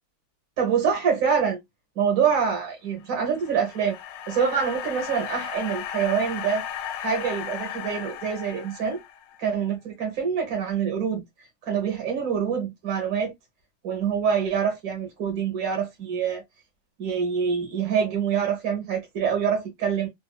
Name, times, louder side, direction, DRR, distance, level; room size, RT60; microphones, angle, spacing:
voice 1, 0.6-1.6 2.0-3.9 4.3-6.6 7.0-9.0 9.4-11.2 11.6-13.3 13.8-16.4 17.0-20.1, right 7 dB, 50° right, 1.4 m, -25 dB
sound 1, 3.0-9.4, left 9 dB, 80° left, 1.2 m, -36 dB
3.5 x 2.5 x 2.3 m
omnidirectional pair, 2.0 m